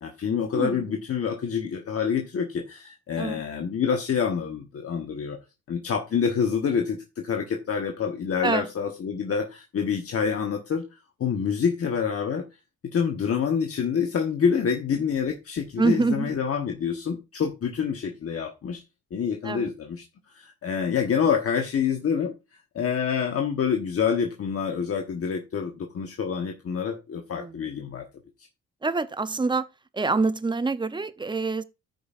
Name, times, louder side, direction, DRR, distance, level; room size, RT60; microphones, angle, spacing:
voice 1, 0.0-5.4 5.7-10.8 11.2-12.4 12.9-18.8 19.1-20.0 20.3-22.3 22.7-28.0, left 7 dB, 50° left, 1.2 m, -27 dB
voice 2, 0.5-1.0 3.2-3.4 8.4-8.7 15.8-16.3 19.4-19.7 27.4-27.7 28.8-29.7 29.9-31.6, right 3 dB, 15° right, 0.6 m, -26 dB
14.5 x 5.3 x 2.5 m
cardioid pair, 90°, 30 cm